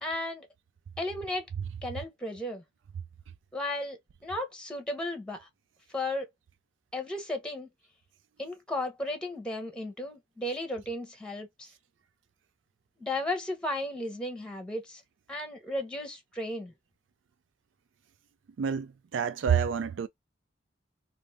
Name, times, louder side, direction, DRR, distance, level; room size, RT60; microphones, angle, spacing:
voice 1, 0.0-0.5 1.0-1.4 1.8-2.6 3.5-5.5 5.9-6.3 6.9-7.7 8.4-11.7 13.0-15.0 15.3-16.7, left 1 dB, 5° left, 0.8 m, -34 dB
voice 2, 18.6-20.1, right 7 dB, 70° right, 0.3 m, -28 dB
2.5 x 2.4 x 3.2 m
head